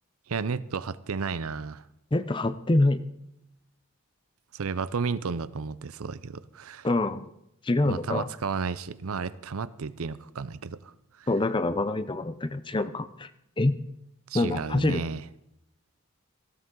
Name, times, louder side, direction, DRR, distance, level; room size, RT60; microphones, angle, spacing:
voice 1, 0.3-1.8 4.5-6.9 7.8-10.9 11.2-11.3 14.3-15.2, right 5 dB, 80° right, 16 dB, 0.6 m, -32 dB
voice 2, 2.1-3.0 6.8-7.3 7.6-8.3 11.3-13.3 13.6-13.7 14.3-15.0, left 2 dB, 20° left, 13 dB, 0.5 m, -25 dB
18.0 x 16.0 x 3.8 m, 0.81 s
head